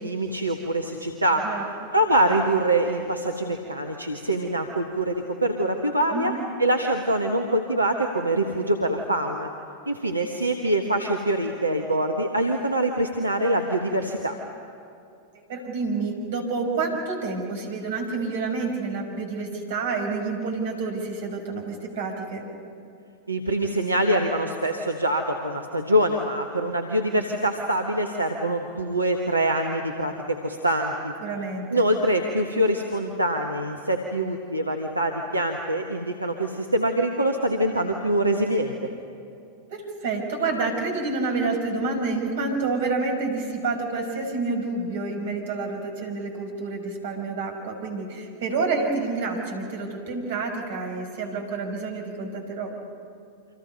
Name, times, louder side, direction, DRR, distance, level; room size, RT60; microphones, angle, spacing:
voice 1, 0.0-1.4 1.9-6.3 6.6-9.5 9.9-14.4 23.3-31.1 31.7-38.7, right 1 dB, 85° right, 3 dB, 1.4 m, -24 dB
voice 2, 15.3-22.4 31.2-31.9 39.7-52.7, right 3 dB, 55° right, 3 dB, 5.2 m, -28 dB
29.0 x 26.0 x 5.4 m, 2.5 s
figure-of-eight pair, 90°, 0 cm